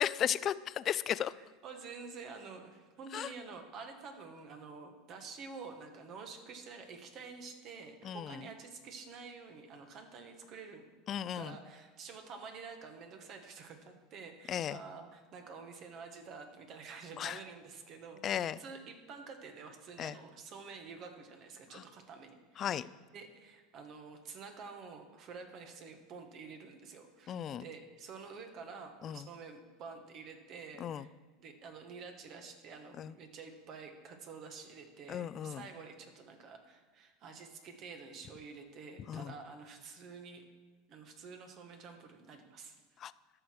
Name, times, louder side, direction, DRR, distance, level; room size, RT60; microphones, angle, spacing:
voice 1, 0.0-1.3 3.1-3.3 8.0-8.4 11.1-11.6 14.5-14.8 17.2-17.4 18.2-18.6 20.0-20.2 21.7-21.8 22.6-22.9 27.3-27.6 29.0-29.2 30.8-31.0 33.0-33.1 35.1-35.6 39.1-39.3 43.0-43.1, left 10 dB, 40° left, 17 dB, 0.4 m, -35 dB
voice 2, 1.3-10.8 11.3-31.1 31.4-40.4 40.9-43.0, right 5 dB, 50° right, 5 dB, 1.7 m, -49 dB
13.0 x 6.3 x 4.7 m, 1.4 s
hypercardioid pair, 105°, 0 cm